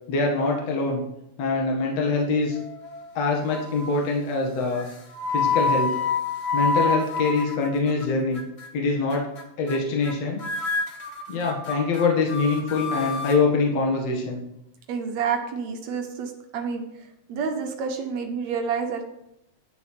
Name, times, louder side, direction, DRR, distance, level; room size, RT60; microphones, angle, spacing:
voice 1, 0.1-1.0 1.4-2.6 3.1-4.9 5.3-5.9 6.5-8.4 8.7-9.3 9.6-10.4 11.3-14.4, left 3 dB, 60° left, -1 dB, 2.8 m, -24 dB
sound 1, 2.5-3.1 3.5-4.0 4.7-8.0 8.3-8.7 9.1-9.4 9.7-9.8 10.0-10.1 10.4-13.4, left 4 dB, 45° left, 0.8 m, -28 dB
voice 2, 14.9-16.8 17.3-19.0, right 6 dB, 70° right, 4 dB, 2.5 m, -28 dB
11.5 x 6.8 x 5.8 m, 0.82 s
omnidirectional pair, 3.3 m